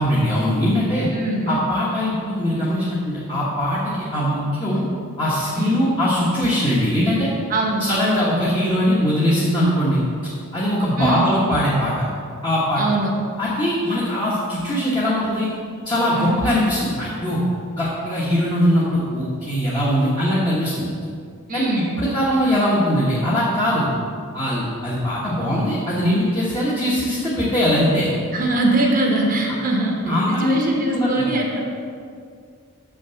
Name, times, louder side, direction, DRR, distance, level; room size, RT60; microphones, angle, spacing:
voice 1, 0.0-1.1 1.5-4.8 5.2-7.3 7.8-10.0 10.5-12.0 12.4-12.8 13.4-15.5 15.8-17.4 17.8-20.9 21.5-23.9 24.3-28.1 30.0-30.6 30.9-31.2, equal, 20° left, -8 dB, 1.3 m, -21 dB
voice 2, 1.1-1.5 5.6-5.9 7.5-7.8 11.0-11.3 12.8-13.1 16.1-16.5 21.5-21.9 28.3-30.0 30.3-31.6, right 2 dB, 40° right, 0 dB, 1.0 m, -22 dB
6.7 x 6.3 x 6.9 m, 2.2 s
head